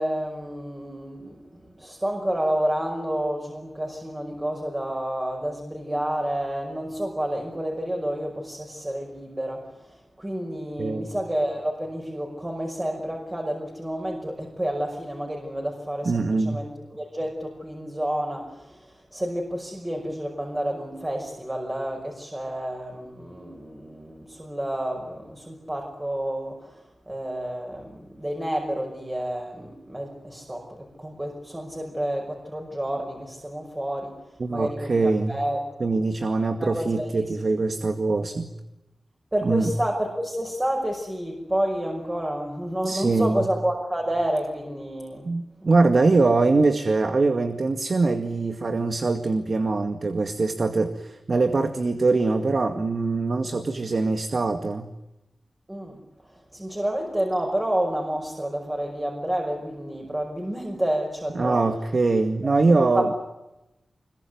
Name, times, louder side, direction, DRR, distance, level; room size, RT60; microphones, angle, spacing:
voice 1, 0.0-35.9 36.6-37.3 39.3-45.3 45.6-45.7 55.7-56.0 56.3-61.7 62.4-62.5 62.9-63.1, right 1 dB, 15° right, 2 dB, 5.7 m, -30 dB
voice 2, 10.8-11.1 16.1-16.6 34.4-35.4 35.8-38.5 39.4-39.7 42.8-43.5 45.2-54.9 61.3-63.1, right 3 dB, 50° right, 8 dB, 2.1 m, -23 dB
26.0 x 23.0 x 9.5 m, 0.97 s
wide cardioid pair, 90°, 0 cm